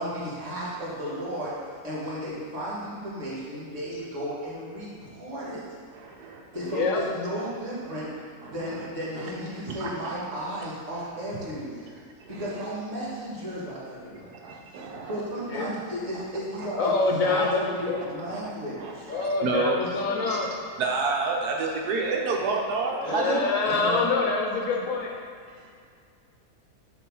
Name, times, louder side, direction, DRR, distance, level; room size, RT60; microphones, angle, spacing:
voice 1, 0.0-1.6 1.8-5.6 6.2-8.1 8.5-12.0 12.3-14.4 15.0-16.9 17.2-19.1 23.0-24.1, equal, 50° right, -7 dB, 2.0 m, -34 dB
voice 2, 5.9-6.9 8.4-8.9 9.2-9.3 9.7-10.2 11.4-11.5 12.3-12.4 14.4-15.2 16.1-16.2 16.8-17.0 18.3-19.8 20.2-20.4 20.8-23.3, right 3 dB, 85° right, 0 dB, 1.3 m, -30 dB
voice 3, 6.6-7.0 15.5-15.7 16.8-18.0 19.1-20.5 23.0-25.1, left 3 dB, 65° left, 0 dB, 1.0 m, -26 dB
7.0 x 3.1 x 5.4 m, 2.2 s
omnidirectional pair, 1.6 m